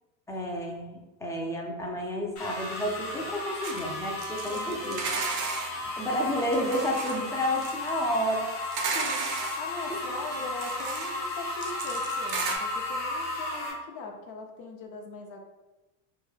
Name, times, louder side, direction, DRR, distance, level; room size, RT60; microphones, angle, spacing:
voice 1, 0.3-5.0 5.7-8.5, equal, 10° left, -1 dB, 0.3 m, -31 dB
sound 1, 2.4-13.7, left 2 dB, 85° left, 1.0 m, -34 dB
sound 2, 3.6-3.8 4.2-5.7 6.4-7.2 7.6-7.9 8.6-9.6 10.3-11.2 11.6-12.6, right 5 dB, 45° right, 0.5 m, -34 dB
voice 2, 4.5-5.1 8.9-15.4, left 3 dB, 55° left, 2 dB, 0.7 m, -41 dB
2.2 x 2.1 x 3.1 m, 1.1 s
supercardioid pair, 105°, 42 cm